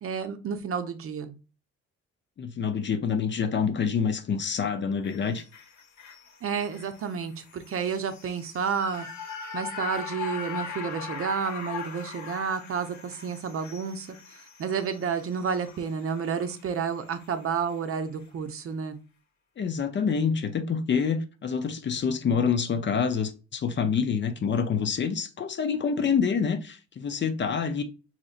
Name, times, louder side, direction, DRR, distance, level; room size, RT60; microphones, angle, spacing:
voice 1, 0.0-1.3 6.4-9.1 9.5-14.1 14.3-19.0, right 6 dB, 45° right, 0.6 m, -30 dB
voice 2, 2.4-5.4 19.6-27.8, left 6 dB, 40° left, 0.5 m, -27 dB
sound 1, 5.0-17.4 17.7-17.8, left 5 dB, 70° left, 0.9 m, -40 dB
4.0 x 2.8 x 2.4 m
cardioid pair, 90°, 30 cm